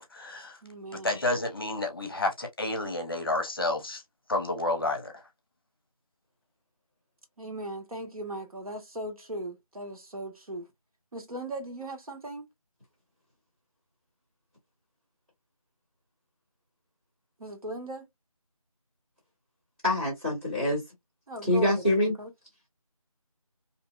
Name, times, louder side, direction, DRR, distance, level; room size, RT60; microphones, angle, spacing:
voice 1, 0.0-0.6 1.0-4.0 4.3-5.1, left 2 dB, 40° left, 0.7 m, -30 dB
voice 2, 0.6-1.1 7.4-10.7 11.1-12.5 17.4-18.1 21.3-21.8 22.2-22.3, right 1 dB, 80° right, 1.1 m, -38 dB
voice 3, 19.8-20.8 21.4-22.1, left 1 dB, 20° right, 0.9 m, -25 dB
2.6 x 2.1 x 2.3 m
figure-of-eight pair, 170°, 18 cm